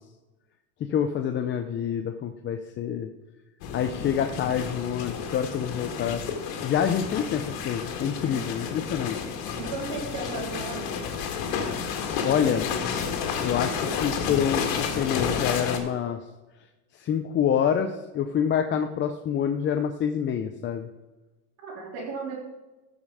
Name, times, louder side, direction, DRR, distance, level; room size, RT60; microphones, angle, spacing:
voice 1, 0.8-3.1 3.7-6.2 6.6-9.3 12.2-12.7 13.4-16.2 17.0-20.9, left 8 dB, 30° left, 6 dB, 0.5 m, -27 dB
sound 1, 3.6-15.8, left 6 dB, 85° left, 1.9 m, -31 dB
voice 2, 9.6-11.0 21.6-22.4, right 4 dB, 75° right, -5 dB, 2.9 m, -35 dB
14.5 x 5.3 x 4.8 m, 1.1 s
cardioid pair, 145°, 40 cm